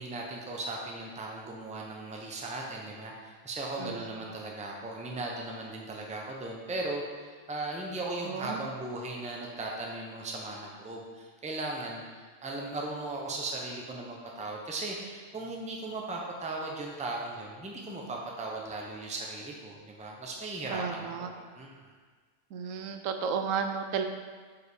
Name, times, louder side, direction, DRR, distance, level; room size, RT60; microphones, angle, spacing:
voice 1, 0.0-21.7, right 2 dB, 10° right, -1 dB, 0.5 m, -37 dB
voice 2, 3.8-4.1 8.2-8.7 20.7-21.3 22.5-24.0, right 6 dB, 85° right, 6 dB, 1.0 m, -33 dB
5.2 x 4.7 x 4.8 m, 1.5 s
omnidirectional pair, 1.3 m